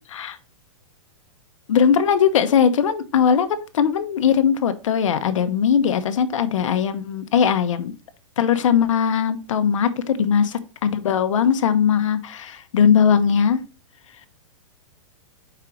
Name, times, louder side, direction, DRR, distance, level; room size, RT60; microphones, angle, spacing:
voice 1, 1.7-7.9 8.4-13.6, left 7 dB, 70° left, 10 dB, 0.9 m, -19 dB
5.0 x 4.5 x 4.9 m, 0.34 s
supercardioid pair, 175°, 17 cm